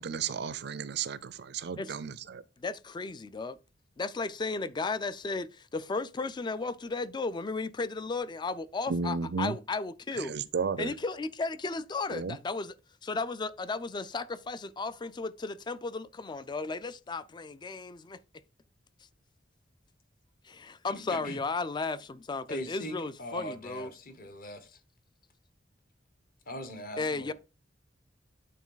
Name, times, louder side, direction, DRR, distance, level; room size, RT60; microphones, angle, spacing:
voice 1, 0.0-2.4 8.9-9.6 10.2-10.9 12.1-12.4, right 5 dB, 60° right, 0.5 m, -33 dB
voice 2, 2.6-3.6 4.0-10.4 10.8-12.7 13.0-18.2 20.4-23.9 27.0-27.3, left 3 dB, 25° left, 0.3 m, -34 dB
voice 3, 22.5-24.7 26.5-27.3, equal, 50° left, 1.2 m, -41 dB
8.3 x 3.9 x 3.9 m
head